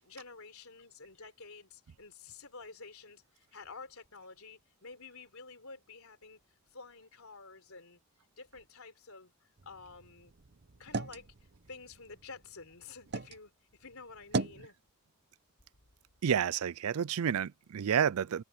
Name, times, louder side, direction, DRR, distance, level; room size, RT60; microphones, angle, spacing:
voice 1, 0.0-6.4 6.7-8.0 8.4-9.3 9.7-10.3 10.8-11.3 11.7-14.7, left 4 dB, 70° left, 4.1 m, -50 dB
sound 1, 9.6-13.4 13.8-14.7, right 3 dB, 50° right, 0.9 m, -39 dB
voice 2, 16.2-18.4, right 8 dB, 70° right, 0.4 m, -30 dB
head